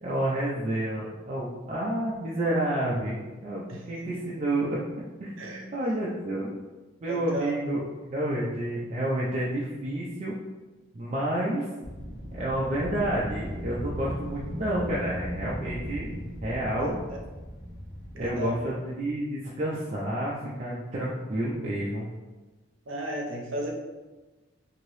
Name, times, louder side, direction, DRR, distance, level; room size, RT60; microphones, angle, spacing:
voice 1, 0.0-4.8 5.2-5.3 5.7-6.6 7.0-10.3 10.9-11.7 12.3-16.2 16.4-17.0 18.2-22.1, right 1 dB, 35° right, -6 dB, 0.4 m, -29 dB
voice 2, 7.1-7.5 16.8-17.2 18.2-18.6 22.9-23.7, equal, 80° right, -1 dB, 0.7 m, -34 dB
Wind, 11.8-18.8, equal, 65° left, 1.0 m, -37 dB
2.9 x 2.7 x 3.0 m, 1.2 s
head